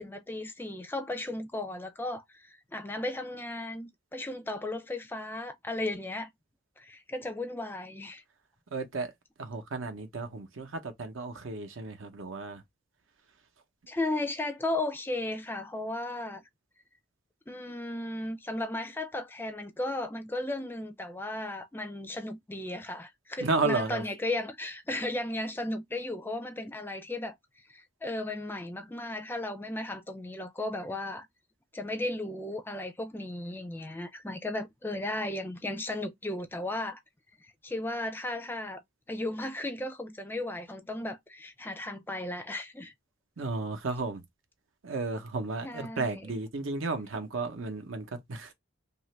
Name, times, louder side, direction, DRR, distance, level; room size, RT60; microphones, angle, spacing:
voice 1, 0.0-6.3 6.8-8.2 13.9-16.4 17.5-27.4 27.7-31.3 31.7-37.0 37.6-38.8 39.1-42.9 45.6-46.3, left 2 dB, 10° left, 0.4 m, -35 dB
voice 2, 8.7-9.1 9.4-12.6 23.4-24.0 43.4-44.2 44.8-48.5, right 3 dB, 80° right, 0.7 m, -33 dB
2.8 x 2.5 x 3.1 m
head